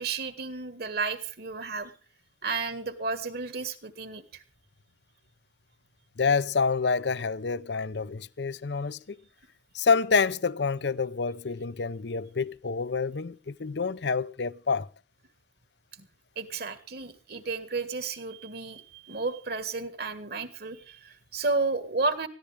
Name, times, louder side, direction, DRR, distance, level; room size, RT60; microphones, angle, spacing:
voice 1, 0.0-1.9 2.4-4.4 16.0-16.1 16.4-22.3, right 3 dB, 55° right, 1.8 m, -32 dB
voice 2, 6.2-9.2 9.7-14.9, left 5 dB, 65° left, 0.6 m, -27 dB
20.5 x 14.5 x 3.4 m
head